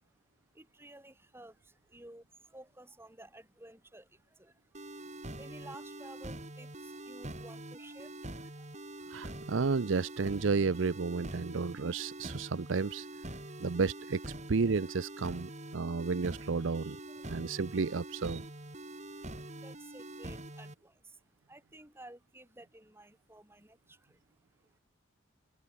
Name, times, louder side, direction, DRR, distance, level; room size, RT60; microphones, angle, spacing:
voice 1, 0.0-9.5 13.4-13.6 17.1-17.4 18.8-19.2 19.5-24.8, right 1 dB, 10° right, 3.3 m, -55 dB
sound 1, 4.7-20.7, right 1 dB, 35° right, 3.9 m, -45 dB
voice 2, 9.1-13.1 13.6-17.0 17.3-18.5, right 4 dB, 70° right, 0.6 m, -32 dB
head